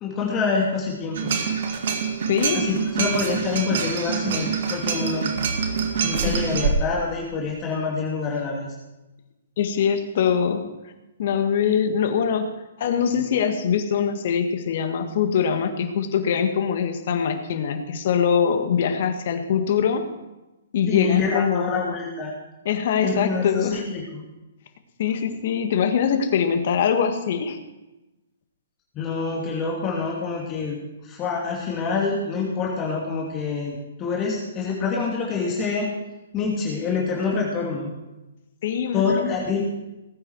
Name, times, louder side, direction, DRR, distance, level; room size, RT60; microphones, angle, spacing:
voice 1, 0.0-1.3 2.5-5.4 6.0-8.7 20.9-22.3 23.0-24.2 28.9-35.9 36.3-37.9 38.9-39.6, left 4 dB, 25° left, -2 dB, 2.8 m, -26 dB
sound 1, 1.1-6.7, right 6 dB, 55° right, 2.1 m, -25 dB
voice 2, 2.3-2.6 6.2-6.6 9.6-10.7 11.2-12.5 12.8-20.1 20.7-21.7 22.7-23.8 25.0-27.6 38.6-39.4, left 7 dB, 55° left, 7 dB, 1.8 m, -23 dB
19.5 x 9.1 x 4.8 m, 1.0 s
hypercardioid pair, 130°, 0 cm